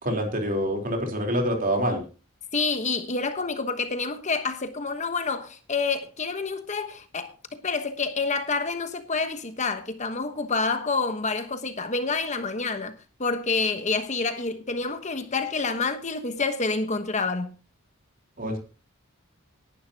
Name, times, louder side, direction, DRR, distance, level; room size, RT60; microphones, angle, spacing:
voice 1, 0.0-2.0 18.4-18.6, equal, 40° right, 3.8 m, -26 dB
voice 2, 2.5-12.9 13.2-17.5, left 4 dB, 35° left, 1.1 m, -28 dB
19.0 x 11.0 x 2.9 m
head